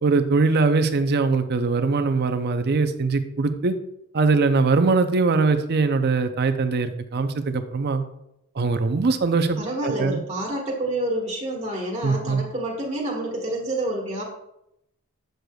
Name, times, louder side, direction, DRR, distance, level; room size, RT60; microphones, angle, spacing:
voice 1, 0.0-3.7 4.1-8.0 8.6-10.2 12.0-12.4, right 4 dB, 45° right, 9 dB, 0.5 m, -21 dB
voice 2, 9.6-14.2, right 1 dB, 25° right, -4 dB, 1.4 m, -28 dB
7.6 x 6.6 x 2.3 m, 0.82 s
head